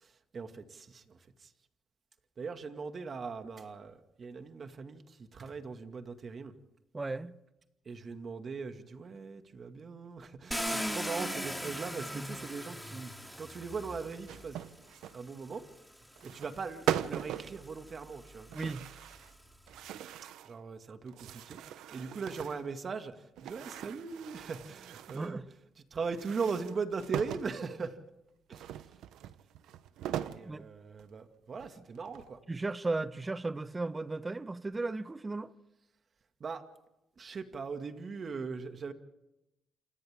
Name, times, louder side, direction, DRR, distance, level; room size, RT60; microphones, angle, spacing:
voice 1, 0.3-1.2 2.4-5.0 5.3-6.5 7.9-13.1 13.4-14.6 15.1-15.6 16.2-18.5 20.5-21.6 21.9-23.1 23.4-25.4 25.9-28.0 28.5-28.7 30.3-32.4 36.4-36.6 37.2-38.9, right 5 dB, 45° right, 2.2 m, -39 dB
voice 2, 6.9-7.4 18.5-18.9 25.1-25.5 30.4-30.7 31.8-31.9 32.5-35.5, right 3 dB, 20° right, 1.1 m, -35 dB
Car, 10.5-14.6 15.6-15.7 16.2-19.5, equal, ahead, 3.1 m, -40 dB
sound 1, 14.3-15.2 16.2-16.6 16.9-17.5 18.5-19.3 19.7-20.5 21.1-22.7 23.4-25.3 26.1-27.5 28.5-30.5 31.0-31.1 31.6-32.4, right 11 dB, 85° right, 0.9 m, -39 dB
28.5 x 27.5 x 3.7 m
cardioid pair, 90°, 0 cm